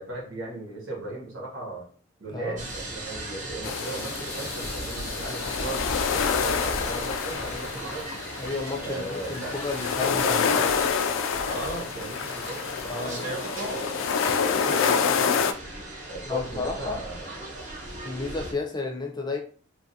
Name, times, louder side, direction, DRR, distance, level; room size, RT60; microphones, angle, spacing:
voice 1, 0.0-1.9 2.2-8.1 8.8-9.6 10.0-10.8 11.1-15.7 16.1-17.7, right 2 dB, 80° right, 1.2 m, -37 dB
voice 2, 2.3-2.6 8.4-10.9 12.9-13.4 16.3-17.0 18.0-19.4, left 3 dB, 20° left, 0.5 m, -32 dB
sound 1, 2.6-18.5, right 1 dB, 40° right, 0.9 m, -37 dB
sound 2, 3.6-15.5, left 6 dB, 85° left, 0.3 m, -28 dB
3.1 x 2.4 x 2.7 m
head